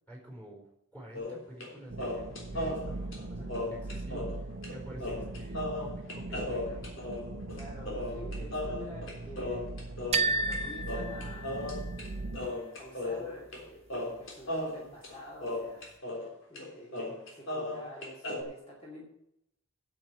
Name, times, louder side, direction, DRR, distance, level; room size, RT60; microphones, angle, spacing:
voice 1, 0.1-7.0, right 1 dB, 5° left, -1 dB, 4.5 m, -49 dB
sound 1, 1.1-1.7 2.0-4.4 4.6-4.7 5.0-10.6 10.9-12.1 12.3-13.6 13.9-16.3 16.6-16.7 16.9-18.4, left 1 dB, 70° left, 3.6 m, -36 dB
sound 2, 1.9-12.5, right 2 dB, 65° right, 0.8 m, -40 dB
voice 2, 3.4-3.9 4.9-5.2 7.5-9.7 10.3-12.3 12.8-13.9 14.2-19.1, equal, 25° left, -4 dB, 2.6 m, -49 dB
sound 3, 10.1-12.0, right 3 dB, 30° right, 0.6 m, -32 dB
8.9 x 7.8 x 8.9 m, 0.78 s
head